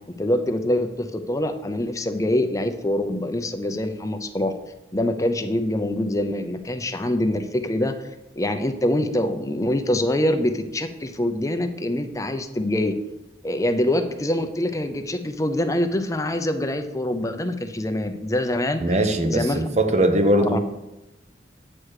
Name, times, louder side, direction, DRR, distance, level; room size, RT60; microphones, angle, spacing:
voice 1, 0.2-4.5 4.9-7.9 8.4-13.0 13.4-19.6 20.4-20.6, left 1 dB, 20° left, 8 dB, 0.5 m, -25 dB
voice 2, 18.8-20.6, right 1 dB, 40° right, 6 dB, 1.0 m, -20 dB
8.7 x 4.8 x 6.5 m, 0.94 s
head